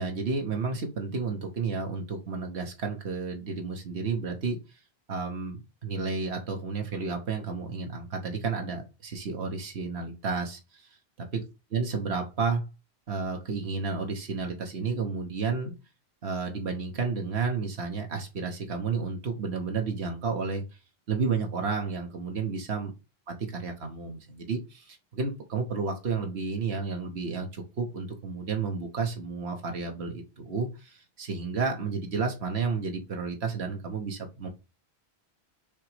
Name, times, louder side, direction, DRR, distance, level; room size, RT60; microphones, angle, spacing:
voice 1, 0.0-4.8 5.1-10.9 11.2-11.4 11.7-12.6 13.1-15.7 16.2-20.8 21.1-22.9 23.3-34.5, right 4 dB, 85° right, 1.4 m, -31 dB
7.1 x 3.0 x 4.9 m
omnidirectional pair, 1.1 m